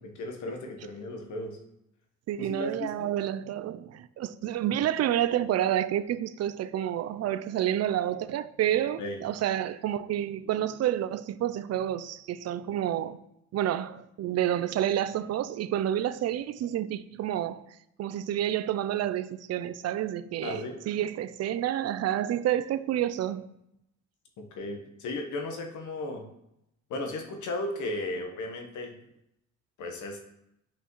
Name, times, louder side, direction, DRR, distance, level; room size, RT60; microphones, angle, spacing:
voice 1, 0.0-1.6 2.4-3.1 9.0-9.2 20.4-20.8 24.4-26.3 26.9-29.0 29.8-30.2, left 2 dB, 75° left, 1.2 m, -35 dB
voice 2, 2.3-13.2 13.5-17.7 18.0-23.5, right 11 dB, 55° right, 0.5 m, -29 dB
8.6 x 5.5 x 3.1 m
cardioid pair, 90°, 30 cm